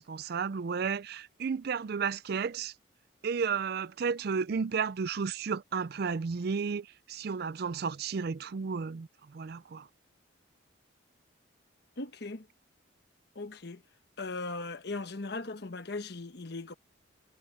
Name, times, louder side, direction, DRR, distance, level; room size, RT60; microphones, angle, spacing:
voice 1, 0.0-2.7 3.2-9.9, right 5 dB, 50° right, 0.4 m, -33 dB
voice 2, 12.0-12.5 13.3-13.8 14.2-16.7, left 3 dB, 55° left, 1.1 m, -38 dB
head